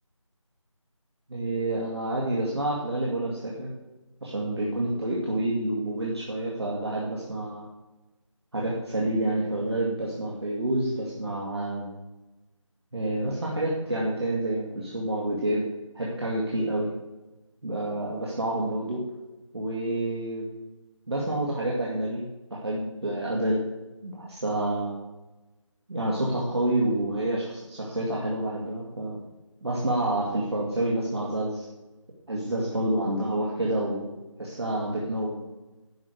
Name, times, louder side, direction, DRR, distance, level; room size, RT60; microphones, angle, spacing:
voice 1, 1.3-3.7 4.2-7.7 8.5-11.9 12.9-15.7 15.9-16.9 17.6-19.0 19.5-20.5 21.1-22.2 22.5-23.7 24.0-24.9 25.9-29.2 29.6-31.7 32.3-34.1 34.4-35.4, right 1 dB, 55° right, -4 dB, 2.2 m, -28 dB
12.0 x 4.9 x 6.6 m, 1.1 s
figure-of-eight pair, 170°, 17 cm